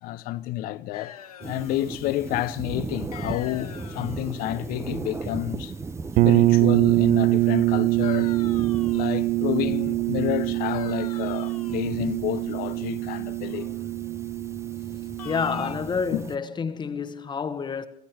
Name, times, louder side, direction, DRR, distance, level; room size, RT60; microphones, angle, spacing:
voice 1, 0.0-5.7 6.2-8.3 8.9-13.7 16.1-16.2, left 15 dB, 50° left, 0.9 m, -30 dB
sound 1, 0.9-1.9 3.1-4.4 8.0-9.3 10.7-12.0 15.2-15.8, left 10 dB, 80° left, 1.0 m, -44 dB
sound 2, 1.4-16.4, right 3 dB, 15° right, 0.8 m, -38 dB
sound 3, 6.2-15.8, right 18 dB, 45° right, 0.5 m, -24 dB
voice 2, 15.2-17.9, left 5 dB, 25° left, 1.3 m, -28 dB
27.0 x 14.5 x 2.9 m
hypercardioid pair, 80°, 19 cm